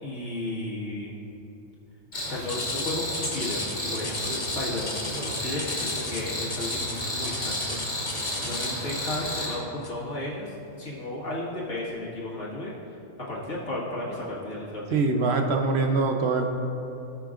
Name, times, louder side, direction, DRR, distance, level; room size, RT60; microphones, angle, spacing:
voice 1, 0.0-1.2 2.2-8.0 8.4-12.7 13.2-15.0, left 1 dB, 65° left, -6 dB, 2.1 m, -34 dB
Cricket, 2.1-9.5, left 1 dB, 45° left, 2.2 m, -32 dB
sound 1, 2.5-8.9 9.8-10.1 10.6-10.7 11.4-11.5, left 2 dB, 25° left, 0.6 m, -36 dB
voice 2, 14.9-16.5, right 3 dB, 60° right, 4 dB, 1.0 m, -23 dB
17.0 x 6.0 x 2.5 m, 2.8 s
omnidirectional pair, 1.3 m